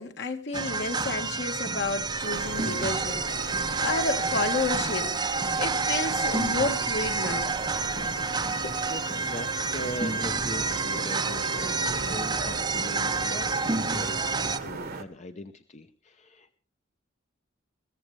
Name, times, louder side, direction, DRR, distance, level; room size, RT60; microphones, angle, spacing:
voice 1, 0.0-7.8 8.2-8.3 8.6-8.8, left 3 dB, 60° left, 1.5 m, -31 dB
sound 1, 0.5-14.6, right 4 dB, 20° right, 0.7 m, -29 dB
sound 2, 1.8-9.0, left 1 dB, 85° left, 1.2 m, -47 dB
sound 3, 2.2-15.0, right 3 dB, 50° right, 1.2 m, -38 dB
voice 2, 8.9-16.6, left 1 dB, 35° left, 0.7 m, -41 dB
21.5 x 15.5 x 3.3 m
head